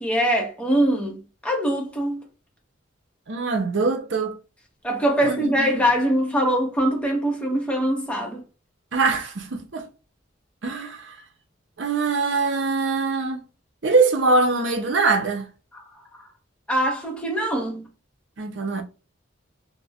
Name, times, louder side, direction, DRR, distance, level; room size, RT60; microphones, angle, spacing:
voice 1, 0.0-2.2 4.8-8.4 16.7-17.9, right 1 dB, 5° left, 0.8 m, -23 dB
voice 2, 3.3-4.3 5.2-5.8 8.9-9.8 10.6-11.2 11.8-13.4 13.8-15.5 18.4-18.8, right 3 dB, 65° right, 0.6 m, -23 dB
2.5 x 2.1 x 3.3 m
head